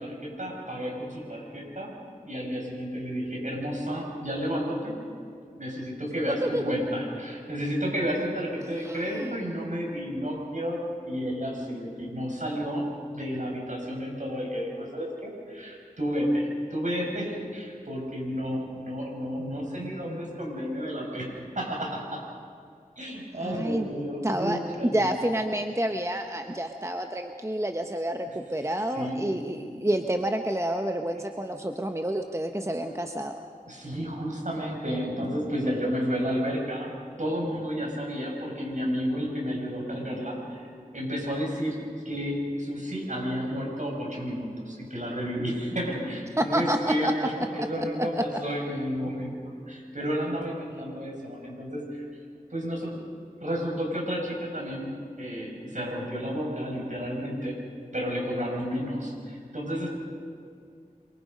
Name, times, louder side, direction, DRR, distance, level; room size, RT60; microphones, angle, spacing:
voice 1, 0.0-1.9 2.2-4.9 5.6-22.2 23.0-25.1 28.9-29.9 33.7-36.9 37.2-49.4 49.7-52.1 52.5-52.9 53.4-57.6 57.9-59.9, equal, 60° right, -1 dB, 6.3 m, -31 dB
voice 2, 8.7-9.4 23.4-23.9 24.2-33.4 46.4-47.3 47.6-47.7 48.0-48.2, right 1 dB, 20° right, 5 dB, 1.1 m, -29 dB
27.5 x 23.5 x 5.4 m, 2.3 s
wide cardioid pair, 45°, 15 cm